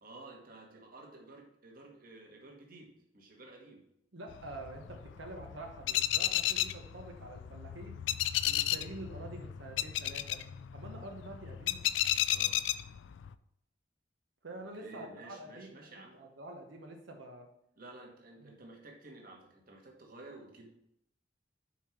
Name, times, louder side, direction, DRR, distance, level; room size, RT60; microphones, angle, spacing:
voice 1, 0.0-2.9 3.1-3.8 12.3-12.6 14.8-16.1 17.8-20.7, right 2 dB, 50° right, 0 dB, 1.5 m, -52 dB
voice 2, 4.1-8.0 8.4-10.4 10.7-11.8 14.4-15.9 16.1-17.5 18.4-18.5, right 2 dB, 90° right, 1 dB, 1.0 m, -47 dB
sound 1, 4.3-13.3, left 12 dB, 85° left, 0.3 m, -34 dB
5.6 x 4.7 x 5.8 m, 0.77 s
head